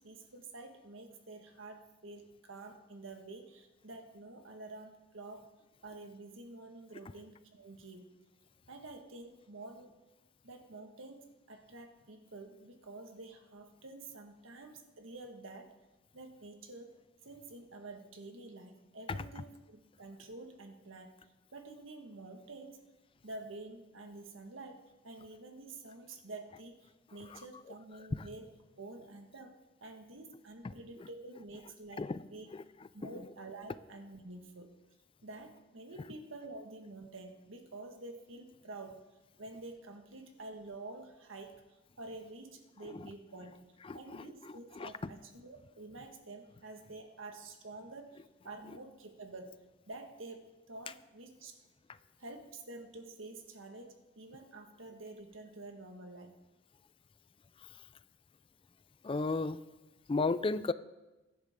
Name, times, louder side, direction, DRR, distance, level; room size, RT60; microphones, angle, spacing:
voice 1, 0.0-5.5 5.8-8.1 8.7-9.9 10.4-15.7 16.1-16.9 17.2-22.8 23.2-28.5 28.8-29.5 29.8-32.5 32.9-34.7 35.2-39.0 39.4-43.5 43.9-51.6 52.2-56.4, right 2 dB, 80° right, 4 dB, 1.6 m, -49 dB
voice 2, 43.8-44.9 59.0-59.6 60.1-60.7, left 3 dB, 25° left, 15 dB, 0.4 m, -34 dB
22.0 x 10.5 x 3.7 m, 1.1 s
head